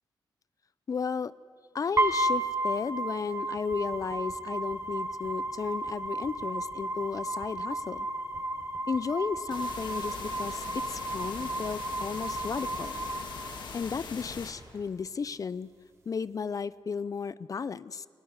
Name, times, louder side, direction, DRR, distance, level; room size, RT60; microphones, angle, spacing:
voice 1, 0.9-1.3 1.7-8.1 8.9-13.0 13.7-15.7 16.1-18.1, left 5 dB, 45° left, 18 dB, 0.6 m, -34 dB
sound 1, 2.0-14.0, right 1 dB, 35° right, 3.9 m, -33 dB
sound 2, 9.5-14.5, left 5 dB, 75° left, 3.5 m, -41 dB
30.0 x 20.5 x 9.7 m, 2.2 s
wide cardioid pair, 110°, 8 cm